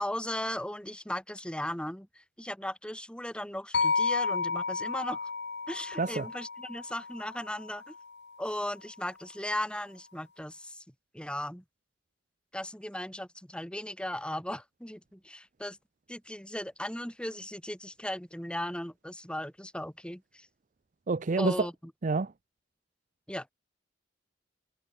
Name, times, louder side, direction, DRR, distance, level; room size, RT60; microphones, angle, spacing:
voice 1, 0.0-5.2 5.7-7.9 8.4-10.8 11.1-11.6 12.5-15.8 16.1-20.5 21.4-21.7 23.3-23.5, left 1 dB, 5° left, 5.7 m, -37 dB
sound 1, 3.7-8.0, left 4 dB, 65° left, 2.9 m, -32 dB
voice 2, 6.0-6.3 21.1-21.7 22.0-22.3, right 3 dB, 45° right, 0.6 m, -28 dB
head